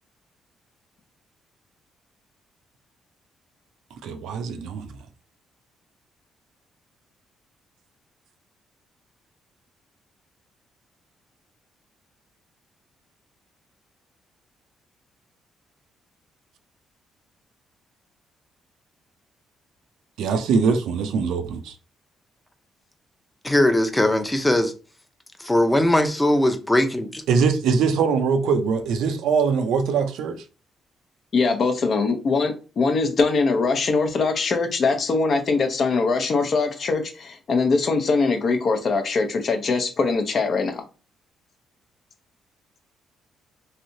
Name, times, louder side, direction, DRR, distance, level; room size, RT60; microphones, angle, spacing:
voice 1, 4.0-5.0 20.2-21.8 27.3-30.4, right 5 dB, 85° right, 0.5 m, -22 dB
voice 2, 23.4-24.7 25.4-27.2, left 1 dB, 10° left, 0.6 m, -20 dB
voice 3, 31.3-40.8, left 4 dB, 50° left, 0.6 m, -22 dB
3.2 x 2.7 x 2.6 m
cardioid pair, 90°, 0 cm